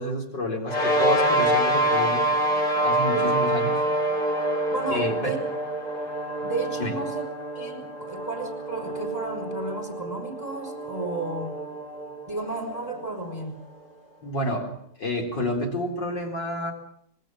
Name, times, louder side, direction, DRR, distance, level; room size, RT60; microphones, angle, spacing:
voice 1, 0.0-2.3 2.8-3.8 4.9-5.4 6.8-7.0 14.2-16.7, left 1 dB, 80° left, 2 dB, 4.6 m, -29 dB
sound 1, 0.7-13.4, right 1 dB, 65° left, 7.0 m, -26 dB
voice 2, 4.7-5.4 6.4-7.2 7.5-11.6 12.3-13.6, right 2 dB, 20° left, 6 dB, 5.5 m, -33 dB
25.5 x 21.5 x 7.5 m, 0.67 s
omnidirectional pair, 1.9 m